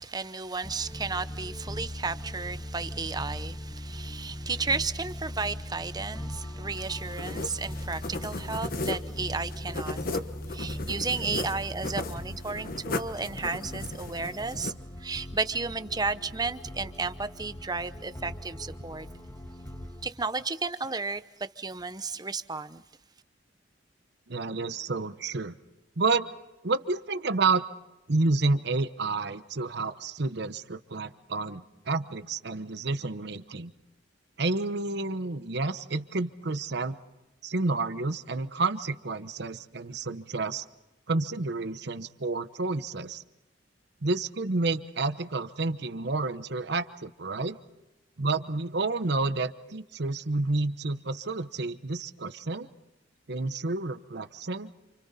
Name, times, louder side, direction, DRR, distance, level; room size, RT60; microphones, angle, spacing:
voice 1, 0.0-10.1 10.5-14.7 15.0-19.1 20.0-22.8, right 4 dB, 20° right, 0.8 m, -33 dB
sound 1, 0.6-20.1, left 1 dB, 15° left, 1.8 m, -40 dB
sound 2, 6.7-14.7, left 2 dB, 55° left, 1.2 m, -36 dB
voice 2, 24.3-25.5 26.0-26.3 26.6-27.6 28.1-33.7 34.4-37.0 37.4-40.6 41.1-43.2 44.0-47.6 48.2-52.7 53.3-54.7, right 3 dB, 65° right, 1.0 m, -30 dB
29.5 x 28.0 x 4.2 m
head